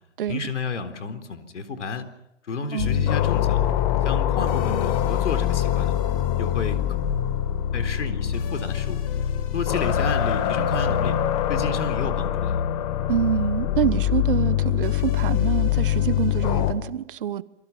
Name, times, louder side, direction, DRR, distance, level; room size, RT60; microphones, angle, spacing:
voice 1, 0.3-2.1 2.5-3.6 4.0-6.0 6.4-6.8 7.7-9.0 9.5-11.2 11.5-12.6, left 4 dB, 75° left, 7 dB, 4.0 m, -31 dB
voice 2, 2.7-3.1 13.1-17.4, right 10 dB, 45° right, 16 dB, 1.2 m, -26 dB
sound 1, 2.8-16.7, left 11 dB, 30° left, 1.7 m, -24 dB
28.0 x 22.5 x 5.8 m, 0.87 s
hypercardioid pair, 150°, 36 cm